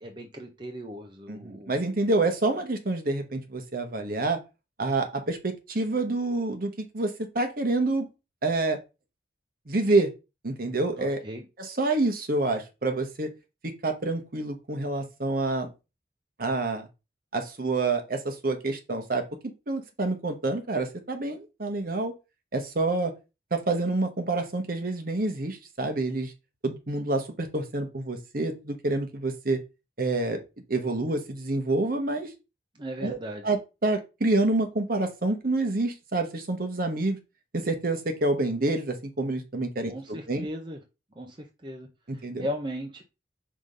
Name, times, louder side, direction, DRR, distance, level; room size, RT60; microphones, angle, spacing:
voice 1, 0.0-1.8 11.0-11.5 32.8-33.5 39.9-40.8 41.2-41.4 41.6-41.9 42.1-43.0, equal, 25° right, 3 dB, 0.7 m, -37 dB
voice 2, 1.3-4.4 4.8-8.1 8.4-8.8 9.7-10.1 10.4-11.2 11.6-13.3 13.6-15.7 16.4-16.9 17.3-19.2 19.7-22.1 22.5-23.1 23.5-26.3 26.6-29.6 30.0-30.4 30.7-32.3 33.0-33.2 33.4-37.2 37.5-40.5 42.1-42.5, right 2 dB, 55° right, 6 dB, 1.2 m, -27 dB
5.0 x 3.7 x 5.3 m, 0.28 s
head